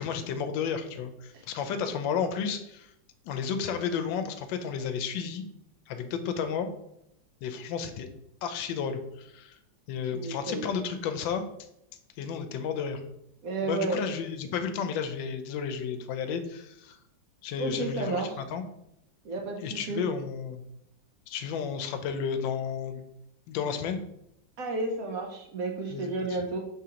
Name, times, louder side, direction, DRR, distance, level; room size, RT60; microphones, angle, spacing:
voice 1, 0.0-2.9 3.2-5.4 5.9-6.7 7.4-8.1 8.4-9.6 9.9-11.4 12.2-13.0 13.6-17.0 17.4-18.6 19.6-20.6 21.3-23.0 23.5-24.0 25.9-26.1, left 6 dB, 85° left, 8 dB, 1.3 m, -32 dB
voice 2, 10.1-10.7 13.4-14.0 17.6-18.3 19.2-20.0 24.6-26.6, right 2 dB, 65° right, 1 dB, 0.9 m, -32 dB
4.9 x 3.7 x 2.8 m, 0.79 s
omnidirectional pair, 2.0 m